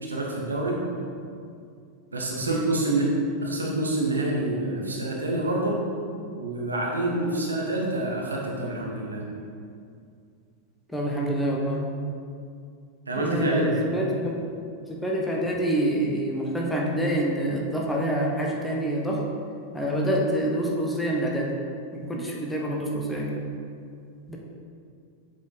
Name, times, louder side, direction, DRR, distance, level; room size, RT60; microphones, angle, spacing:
voice 1, 0.0-0.8 2.1-3.1 3.4-5.8 6.4-9.2 13.1-13.8 22.1-22.2, right 2 dB, 75° right, -2 dB, 1.1 m, -27 dB
voice 2, 10.9-11.9 13.2-14.4 14.9-19.2 19.7-21.6 21.9-23.3 24.3-24.4, right 1 dB, 5° left, -2 dB, 1.0 m, -26 dB
7.4 x 4.3 x 3.8 m, 2.4 s
figure-of-eight pair, 90°, 0 cm